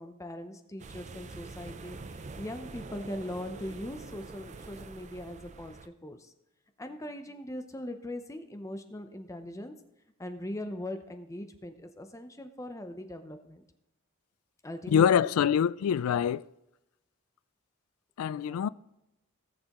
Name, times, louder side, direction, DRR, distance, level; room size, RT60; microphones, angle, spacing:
voice 1, 0.0-6.3 6.8-9.7 10.2-13.6 14.6-15.3 18.2-18.7, left 1 dB, 15° left, 0.6 m, -40 dB
sound 1, 0.8-5.9, right 3 dB, 35° right, 0.5 m, -45 dB
voice 2, 14.9-16.4 18.2-18.7, left 8 dB, 80° left, 0.3 m, -25 dB
18.0 x 6.6 x 3.0 m
head